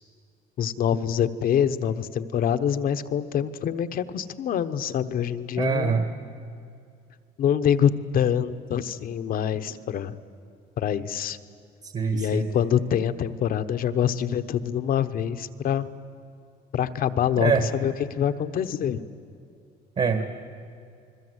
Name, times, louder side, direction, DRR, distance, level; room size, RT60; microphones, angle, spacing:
voice 1, 0.6-6.0 7.4-10.2 10.8-11.4 12.1-15.9 16.7-19.0, left 9 dB, 60° left, 10 dB, 1.1 m, -25 dB
voice 2, 5.6-6.1 11.8-12.5 17.4-17.6 20.0-20.2, right 5 dB, 40° right, 7 dB, 1.8 m, -24 dB
29.0 x 21.5 x 8.1 m, 2.4 s
cardioid pair, 110°, 17 cm